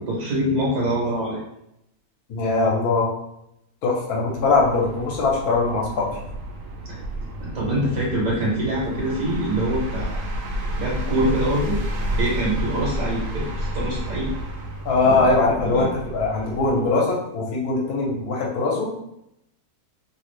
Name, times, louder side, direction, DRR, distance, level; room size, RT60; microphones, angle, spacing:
voice 1, 0.1-1.4 6.9-7.0 7.4-10.2 10.8-11.8 12.2-14.3 15.0-15.9, right 1 dB, 65° right, -6 dB, 1.3 m, -25 dB
voice 2, 2.3-3.1 3.8-6.1 14.8-18.9, left 3 dB, 75° left, -2 dB, 1.3 m, -21 dB
sound 1, 4.2-16.9, right 1 dB, 80° right, 1.1 m, -31 dB
3.1 x 2.4 x 3.1 m, 0.80 s
omnidirectional pair, 1.7 m